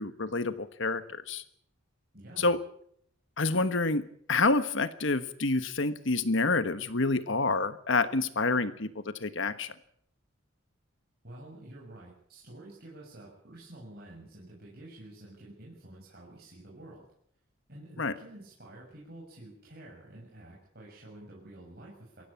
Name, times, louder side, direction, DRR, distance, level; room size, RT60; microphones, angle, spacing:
voice 1, 0.0-1.4 2.4-2.6 3.4-9.7 18.0-18.1, left 3 dB, 65° left, 12 dB, 1.3 m, -28 dB
voice 2, 2.1-2.5 11.2-17.0 17.7-22.2, right 1 dB, 45° right, -4 dB, 6.6 m, -49 dB
23.0 x 16.5 x 8.7 m, 0.68 s
head